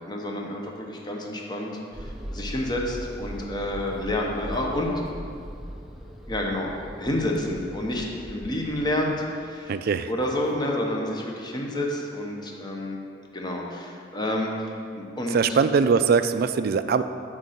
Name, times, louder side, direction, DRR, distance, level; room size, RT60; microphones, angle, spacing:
voice 1, 0.1-1.7 2.0-4.9 6.3-6.7 7.0-9.7 10.1-13.0 13.3-14.7 15.0-15.6, left 1 dB, 25° left, -1 dB, 0.9 m, -29 dB
sound 1, 1.9-9.1, equal, ahead, 0.5 m, -39 dB
voice 2, 9.7-10.1 15.3-17.0, right 5 dB, 55° right, 11 dB, 0.3 m, -21 dB
8.4 x 3.7 x 6.7 m, 2.4 s
head